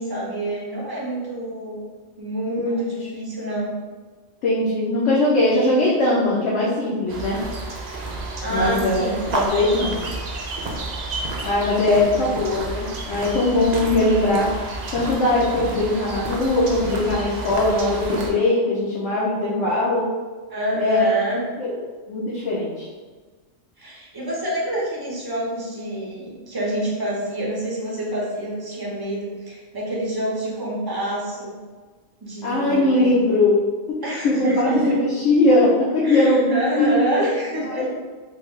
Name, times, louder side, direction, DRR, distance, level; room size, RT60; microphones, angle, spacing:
voice 1, 0.0-1.8 2.2-3.7 8.4-9.2 12.0-12.2 20.5-21.4 23.8-31.5 32.2-33.3 34.0-35.0 36.0-37.9, right 1 dB, 25° right, -5 dB, 0.6 m, -27 dB
voice 2, 4.4-7.4 8.5-9.1 9.3-10.0 11.4-14.5 14.9-20.1 20.8-21.1 21.6-21.8 22.1-22.9 32.4-37.3 37.8-37.9, left 2 dB, 70° left, -7 dB, 1.0 m, -20 dB
sound 1, 7.1-18.3, right 2 dB, 65° right, 0.4 m, -30 dB
3.2 x 2.2 x 3.6 m, 1.4 s
omnidirectional pair, 1.3 m